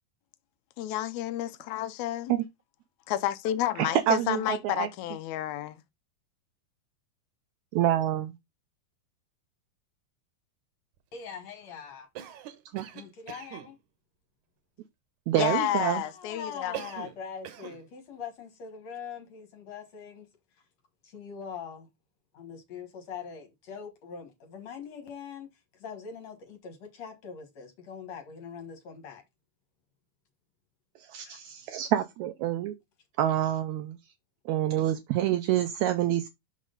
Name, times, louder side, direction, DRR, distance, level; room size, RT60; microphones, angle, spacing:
voice 1, 0.8-2.3 3.1-5.8 15.4-16.8, left 13 dB, 75° left, 1.8 m, -30 dB
voice 2, 3.8-4.9 7.7-8.4 12.7-12.8 15.3-16.0 31.1-32.7 33.2-34.0 34.4-36.3, right 12 dB, 85° right, 1.6 m, -27 dB
voice 3, 11.1-12.1 12.9-13.8 15.4-20.3 20.5-20.6 21.0-21.9 22.3-29.2 31.2-31.4, left 6 dB, 60° left, 2.3 m, -42 dB
Cough, 12.1-13.7 16.7-17.2 17.4-17.8, right 12 dB, 70° right, 2.0 m, -41 dB
6.3 x 6.2 x 3.8 m
omnidirectional pair, 3.9 m